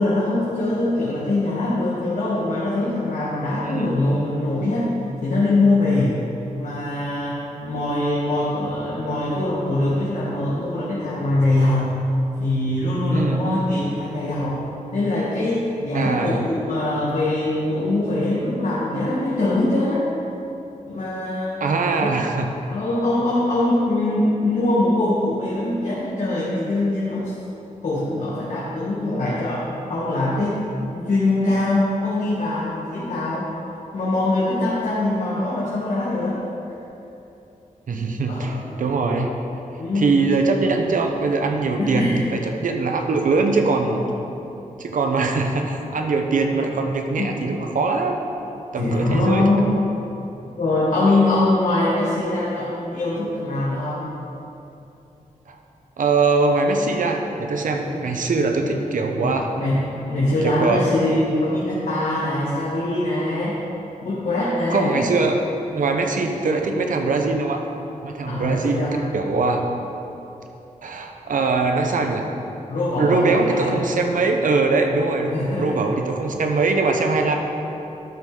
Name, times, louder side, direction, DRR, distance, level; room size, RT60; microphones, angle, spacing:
voice 1, 0.0-4.9 5.2-6.2 6.6-11.9 12.4-14.6 14.9-20.0 20.9-21.6 22.0-22.1 22.7-27.3 27.8-30.6 30.9-33.5 33.9-36.4 38.3-38.5 39.8-40.2 41.5-42.2 47.2-47.3 48.8-49.7 50.6-54.0 57.7-58.1 58.6-58.7 59.2-63.6 64.0-65.0 68.3-69.0 72.7-74.0 75.3-75.8 76.4-76.5, left 2 dB, 65° left, -8 dB, 1.7 m, -23 dB
voice 2, 3.6-3.9 13.1-13.4 15.9-16.4 21.6-22.5 37.9-39.3 39.9-44.0 44.8-48.2 48.7-49.4 55.5-55.6 56.0-59.5 60.4-60.8 64.7-65.5 65.7-67.6 68.0-69.6 70.8-72.3 73.0-77.4, right 3 dB, 75° right, 3 dB, 0.9 m, -22 dB
12.5 x 6.2 x 3.9 m, 2.9 s
wide cardioid pair, 115°, 14 cm